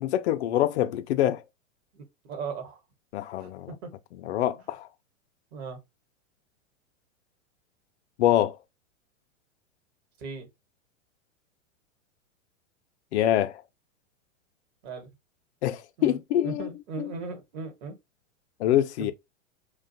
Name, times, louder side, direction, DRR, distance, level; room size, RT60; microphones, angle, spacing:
voice 1, 0.0-1.4 3.1-3.7 4.2-4.9 8.2-8.6 13.1-13.6 15.6-16.7 17.0-17.1 18.6-19.1, left 12 dB, 60° left, 0.5 m, -25 dB
voice 2, 1.9-2.8 3.4-3.9 5.5-5.8 10.2-10.5 14.8-15.1 16.0-18.0 19.0-19.1, right 4 dB, 55° right, 1.1 m, -38 dB
2.4 x 2.2 x 2.6 m
hypercardioid pair, 105°, 39 cm